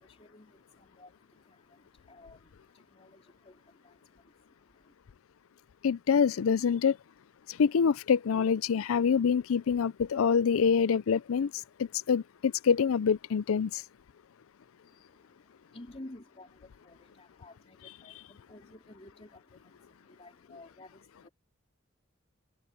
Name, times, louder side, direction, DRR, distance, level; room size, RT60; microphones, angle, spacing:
voice 1, 0.0-4.9 14.9-21.3, left 1 dB, 30° left, 3.1 m, -53 dB
voice 2, 5.8-7.0 7.6-11.5 11.8-13.8, left 6 dB, 85° left, 0.4 m, -26 dB
head